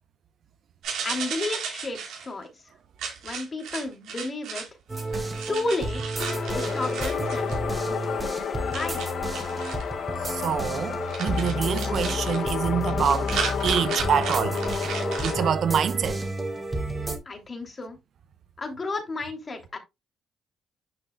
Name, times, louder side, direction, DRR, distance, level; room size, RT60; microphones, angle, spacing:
sound 1, 0.8-2.3 3.0-4.7 4.9-7.6 8.7-9.8 11.1-12.4 12.9-15.3, right 6 dB, 80° right, 4.5 m, -34 dB
voice 1, 1.0-2.6 3.2-4.6 5.5-6.0 6.5-7.5 7.8-9.1 17.2-18.0 18.6-19.8, left 2 dB, 30° left, 3.0 m, -32 dB
sound 2, 4.9-17.2, right 1 dB, 20° right, 3.1 m, -31 dB
sound 3, 6.2-15.5, left 8 dB, 60° left, 0.7 m, -31 dB
voice 2, 10.2-13.3 13.6-14.9 15.2-16.2, right 8 dB, 65° right, 0.7 m, -26 dB
9.8 x 6.6 x 2.3 m
cardioid pair, 90°, 0 cm